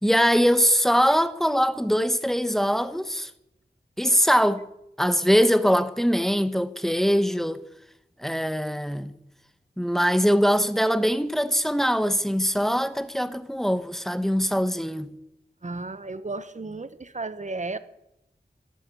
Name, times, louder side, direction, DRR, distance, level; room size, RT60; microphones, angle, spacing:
voice 1, 0.0-3.3 4.0-4.6 5.0-7.6 8.2-9.1 9.8-15.1, equal, ahead, 1.0 m, -22 dB
voice 2, 15.6-17.8, right 3 dB, 40° right, 1.0 m, -33 dB
12.5 x 11.5 x 8.4 m
wide cardioid pair, 55°, 18 cm